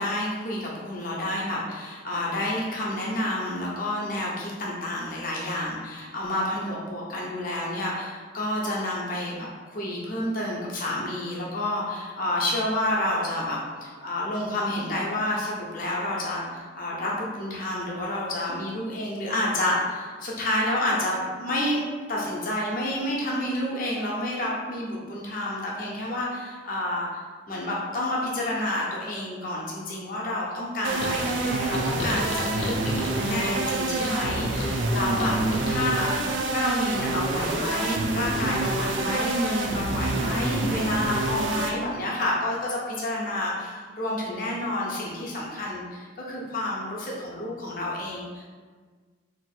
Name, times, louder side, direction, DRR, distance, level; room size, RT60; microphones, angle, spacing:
voice 1, 0.0-21.8 22.1-27.1 27.5-36.1 36.5-48.4, left 1 dB, 45° left, -4 dB, 0.8 m, -29 dB
sound 1, 30.8-41.7, right 2 dB, 75° right, 0.5 m, -27 dB
sound 2, 31.0-36.2, left 2 dB, 75° left, 0.5 m, -35 dB
2.9 x 2.6 x 4.2 m, 1.5 s
head